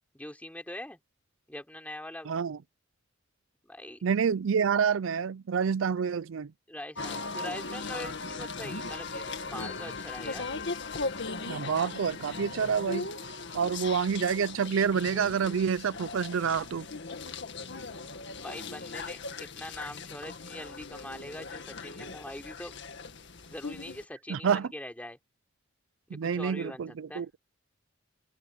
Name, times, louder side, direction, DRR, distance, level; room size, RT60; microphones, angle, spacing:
voice 1, 0.1-1.0 1.5-2.3 3.6-4.0 6.7-10.5 18.4-22.7 23.5-25.2 26.1-27.2, left 1 dB, 10° left, 4.0 m, -43 dB
voice 2, 2.3-2.6 4.0-6.5 11.5-13.1 13.5-16.9 24.3-24.7 26.1-27.3, right 6 dB, 70° right, 0.4 m, -28 dB
sound 1, 6.9-24.0, left 3 dB, 65° left, 1.9 m, -38 dB
open air
head